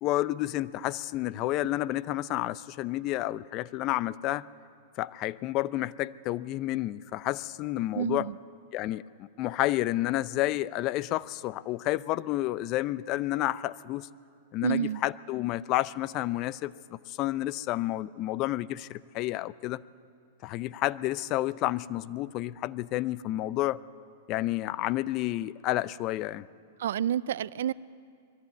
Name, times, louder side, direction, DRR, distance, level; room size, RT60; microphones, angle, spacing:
voice 1, 0.0-4.5 5.0-8.3 8.7-14.1 14.5-19.8 20.4-23.8 24.3-26.5, left 16 dB, 40° left, 18 dB, 0.5 m, -30 dB
voice 2, 8.0-8.4 14.6-15.0 26.8-27.7, right 10 dB, 75° right, 20 dB, 0.4 m, -29 dB
21.5 x 14.0 x 9.3 m, 2.2 s
hypercardioid pair, 120°, 0 cm